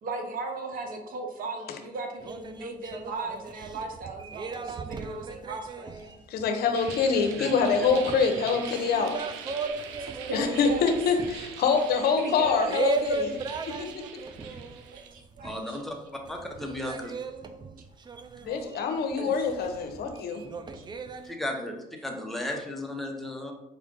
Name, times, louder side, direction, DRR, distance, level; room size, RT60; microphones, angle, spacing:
voice 1, 0.0-5.9 10.0-10.8 12.2-12.8 14.9-15.8 19.2-19.5 20.7-20.8, right 3 dB, 50° right, 4 dB, 0.9 m, -36 dB
sound 1, 2.2-15.9 16.2-21.3, right 3 dB, 25° right, 0.4 m, -37 dB
voice 2, 6.3-9.1 10.3-13.4 13.7-13.9 18.5-20.4, left 5 dB, 60° left, 5 dB, 0.7 m, -25 dB
sound 2, 6.7-15.1, right 8 dB, 85° right, 0.5 m, -42 dB
voice 3, 15.4-17.1 21.2-23.5, left 1 dB, ahead, 1 dB, 0.9 m, -35 dB
4.9 x 2.4 x 3.7 m, 0.93 s
supercardioid pair, 75°, 18 cm